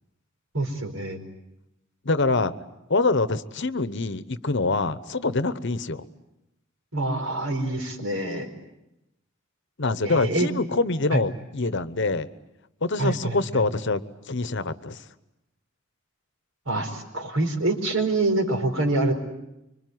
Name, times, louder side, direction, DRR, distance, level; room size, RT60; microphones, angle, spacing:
voice 1, 0.5-1.2 6.9-8.5 10.0-10.5 11.1-11.2 13.0-13.6 16.7-19.1, right 2 dB, 75° right, 5 dB, 4.7 m, -26 dB
voice 2, 2.0-2.5 2.9-6.0 9.8-12.3 12.8-14.0 14.3-15.0, left 3 dB, 60° left, 14 dB, 1.0 m, -25 dB
25.5 x 24.5 x 9.5 m, 0.91 s
head